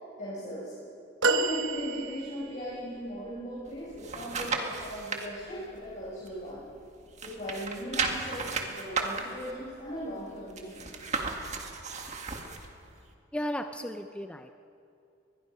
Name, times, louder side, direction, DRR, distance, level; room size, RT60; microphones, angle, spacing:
voice 1, 0.2-0.7 1.2-6.6 7.2-10.9, equal, 40° left, -7 dB, 5.5 m, -38 dB
sound 1, 1.2-2.6 3.4-3.5, right 3 dB, 75° right, 1.1 m, -29 dB
sound 2, 3.7-5.3 5.7-6.9 7.1-12.7 13.1-13.2, right 4 dB, 35° right, 1.8 m, -34 dB
voice 2, 13.3-14.5, equal, 5° left, 6 dB, 0.6 m, -35 dB
23.0 x 21.5 x 5.7 m, 2.5 s
head